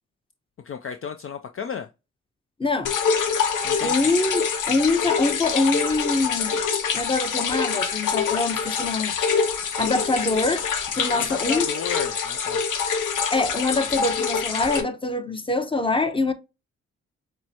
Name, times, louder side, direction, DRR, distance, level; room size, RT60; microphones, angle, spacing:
voice 1, 0.6-1.9 3.6-4.1 11.1-12.6, left 6 dB, 45° left, 0.5 m, -33 dB
voice 2, 2.6-2.9 3.8-4.4 4.7-6.6 6.9-9.2 9.8-10.7 10.9-11.6 13.3-16.3, left 3 dB, 15° left, 0.9 m, -24 dB
sound 1, 2.8-14.8, left 6 dB, 70° left, 0.9 m, -25 dB
6.0 x 2.2 x 2.8 m
supercardioid pair, 50°, 32 cm